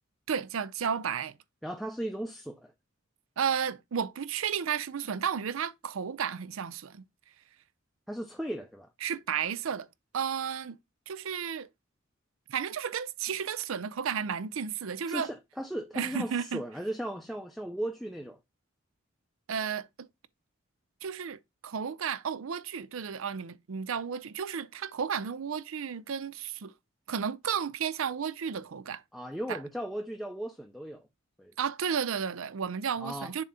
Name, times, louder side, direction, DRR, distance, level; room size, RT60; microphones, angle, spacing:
voice 1, 0.3-1.3 3.4-7.0 9.0-9.9 10.1-10.8 11.1-11.7 12.5-15.3 15.9-16.6 19.5-20.1 21.0-26.7 27.1-29.0 29.5-29.6 31.6-33.4, right 7 dB, 80° right, 0.5 m, -33 dB
voice 2, 1.6-2.7 8.1-8.9 15.1-18.4 29.1-31.1 31.4-31.5 33.0-33.3, right 1 dB, ahead, 0.5 m, -36 dB
7.1 x 2.8 x 4.7 m
head